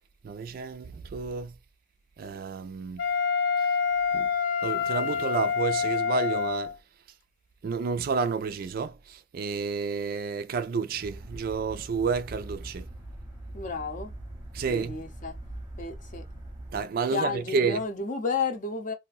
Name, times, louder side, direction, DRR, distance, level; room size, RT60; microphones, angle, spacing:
voice 1, 0.2-1.6 2.2-3.0 4.1-4.3 4.6-6.8 7.6-12.9 14.5-15.0 16.7-17.8, right 5 dB, 50° right, 0.3 m, -30 dB
Wind instrument woodwind instrument, 3.0-6.7, left 6 dB, 85° left, 0.5 m, -27 dB
sound 1, 11.0-16.8, right 1 dB, 10° right, 0.7 m, -42 dB
voice 2, 13.5-14.1 14.7-15.3 15.8-16.2 17.1-18.9, left 4 dB, 40° left, 0.6 m, -31 dB
2.5 x 2.1 x 3.9 m
head